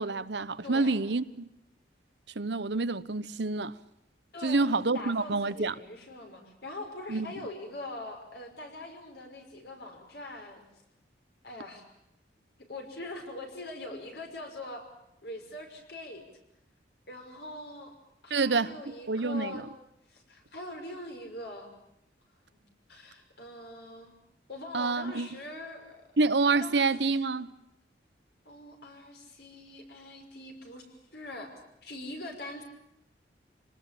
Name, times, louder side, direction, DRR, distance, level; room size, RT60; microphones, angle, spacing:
voice 1, 0.0-1.5 2.3-3.7 4.4-5.7 7.1-7.3 18.3-19.6 24.7-25.3 26.2-27.5, right 3 dB, 70° right, 14 dB, 1.0 m, -28 dB
voice 2, 0.6-1.0 4.3-10.6 11.4-11.9 12.7-14.8 15.2-16.2 17.1-18.0 18.2-19.6 20.1-21.7 22.5-22.6 22.9-24.1 24.5-26.0 26.6-27.1 28.5-31.5 31.8-32.6, left 1 dB, 60° left, 4 dB, 5.7 m, -42 dB
27.0 x 19.5 x 8.5 m, 0.85 s
head